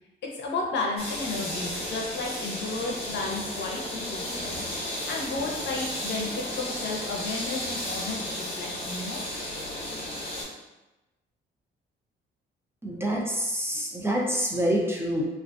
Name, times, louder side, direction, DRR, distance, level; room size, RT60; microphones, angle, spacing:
voice 1, 0.2-9.2, left 3 dB, 65° left, -1 dB, 0.6 m, -33 dB
sound 1, 1.0-10.4, left 1 dB, 30° left, 1.0 m, -34 dB
voice 2, 12.8-15.4, equal, 10° right, -2 dB, 0.5 m, -27 dB
2.4 x 2.4 x 2.3 m, 1.0 s
cardioid pair, 90°, 20 cm